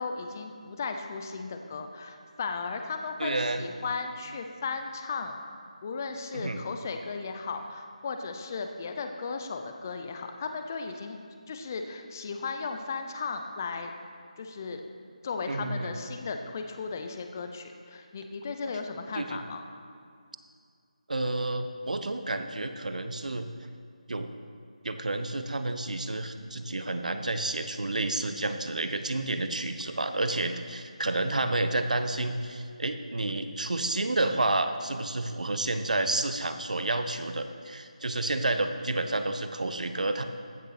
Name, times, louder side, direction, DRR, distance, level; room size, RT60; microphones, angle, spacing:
voice 1, 0.0-5.4 5.8-11.2 11.5-13.9 14.4-14.8 15.2-19.6, left 4 dB, 25° left, 6 dB, 0.7 m, -36 dB
voice 2, 3.2-3.6 6.3-6.6 15.5-15.9 19.1-19.4 21.1-23.5 24.1-24.3 24.8-40.2, right 2 dB, 80° right, 8 dB, 1.1 m, -30 dB
15.0 x 6.7 x 6.0 m, 2.3 s
figure-of-eight pair, 170°, 4 cm